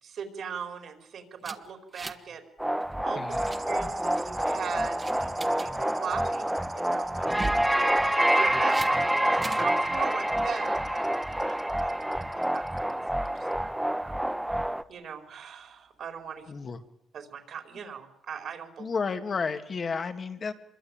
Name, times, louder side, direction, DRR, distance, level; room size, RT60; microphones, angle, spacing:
voice 1, 0.0-2.4 3.0-3.2 3.7-8.0 8.3-12.2 12.5-14.1 14.5-14.6 14.9-16.5 17.1-18.8, right 7 dB, 60° right, 5 dB, 4.5 m, -39 dB
sound 1, 1.4-2.3 2.6-2.8 3.2-3.6 4.2-4.5 5.0-5.7 7.2-7.7 8.7-8.9 9.4-9.7, right 3 dB, 25° right, 1.8 m, -37 dB
sound 2, 2.6-14.8, right 1 dB, 5° right, 1.1 m, -27 dB
voice 2, 3.2-3.5 16.5-16.8 18.8-20.5, left 5 dB, 40° left, 7 dB, 2.1 m, -32 dB
sound 3, 3.3-12.9 13.2-13.5 14.9-15.0, right 5 dB, 45° right, 2.9 m, -52 dB
25.0 x 22.5 x 9.0 m, 0.79 s
cardioid pair, 90°, 0 cm